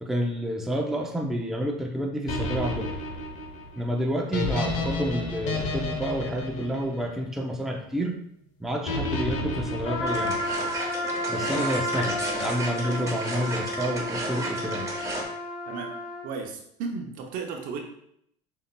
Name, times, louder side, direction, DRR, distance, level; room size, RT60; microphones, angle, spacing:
voice 1, 0.0-2.9 3.8-8.2 8.6-10.4 11.3-14.9, equal, ahead, 0 dB, 0.6 m, -29 dB
sound 1, 2.3-7.6 8.9-10.8, left 2 dB, 55° left, 0.9 m, -31 dB
Trumpet, 9.8-16.3, left 1 dB, 80° left, 1.0 m, -32 dB
sound 2, 10.1-15.2, right 2 dB, 20° right, 1.1 m, -34 dB
voice 2, 16.2-17.8, right 5 dB, 65° right, 2 dB, 0.8 m, -34 dB
6.7 x 2.8 x 2.2 m, 0.72 s
supercardioid pair, 115°, 15 cm